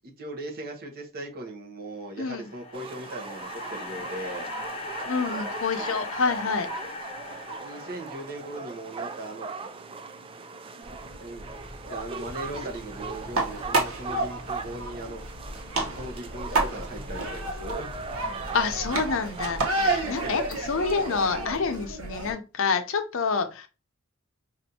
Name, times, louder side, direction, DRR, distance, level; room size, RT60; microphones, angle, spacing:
voice 1, 0.2-4.5 5.2-5.4 7.6-9.5 11.2-11.4 11.8-15.2 15.8-18.0 19.8-20.0, right 1 dB, 50° right, 1.0 m, -39 dB
sound 1, 2.1-8.5, left 3 dB, 30° left, 0.7 m, -39 dB
sound 2, 2.7-21.3, right 4 dB, 25° right, 0.3 m, -39 dB
voice 2, 5.1-6.7 18.5-23.7, left 5 dB, 70° left, 0.6 m, -27 dB
sound 3, 10.8-22.3, right 2 dB, 85° right, 1.1 m, -31 dB
5.2 x 2.5 x 2.8 m
head